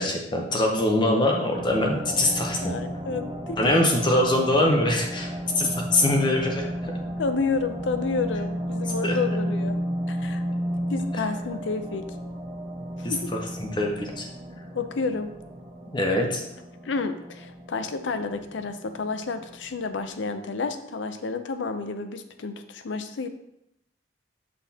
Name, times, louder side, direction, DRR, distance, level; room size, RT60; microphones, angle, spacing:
voice 1, 0.0-2.7 3.6-6.9 9.0-9.2 13.0-13.1 13.6-14.2 15.9-16.4, left 1 dB, 25° left, 1 dB, 0.7 m, -23 dB
sound 1, 1.5-20.2, equal, 30° right, 1.3 m, -33 dB
voice 2, 2.6-3.7 7.2-9.8 10.1-10.4 10.9-12.1 13.0-13.3 14.7-15.4 16.8-23.3, left 4 dB, 85° left, 9 dB, 0.5 m, -30 dB
6.3 x 5.8 x 2.8 m, 0.81 s
head